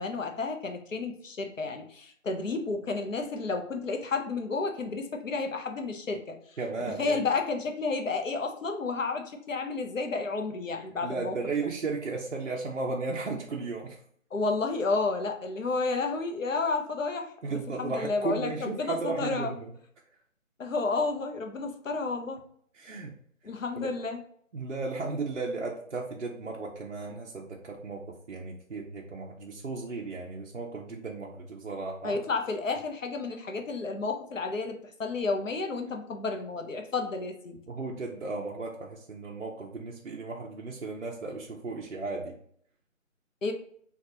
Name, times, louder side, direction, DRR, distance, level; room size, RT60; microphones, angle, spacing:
voice 1, 0.0-6.3 7.0-11.3 14.3-19.5 20.6-22.4 23.4-24.2 32.0-37.6 43.4-43.5, left 3 dB, 70° left, 4 dB, 0.7 m, -31 dB
voice 2, 6.6-7.3 11.0-14.0 17.4-19.7 22.7-23.1 23.8-23.9 24.5-32.2 37.7-42.4, right 3 dB, 60° right, -2 dB, 0.6 m, -35 dB
3.4 x 2.3 x 2.7 m, 0.62 s
figure-of-eight pair, 180°, 41 cm